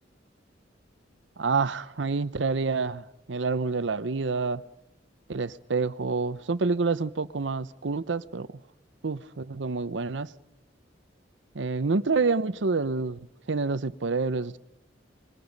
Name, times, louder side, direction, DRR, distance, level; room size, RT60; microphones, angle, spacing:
voice 1, 1.4-4.6 5.3-8.5 9.0-10.3 11.5-13.2 13.5-14.6, right 4 dB, 75° right, 0.7 m, -28 dB
26.5 x 22.5 x 5.3 m
head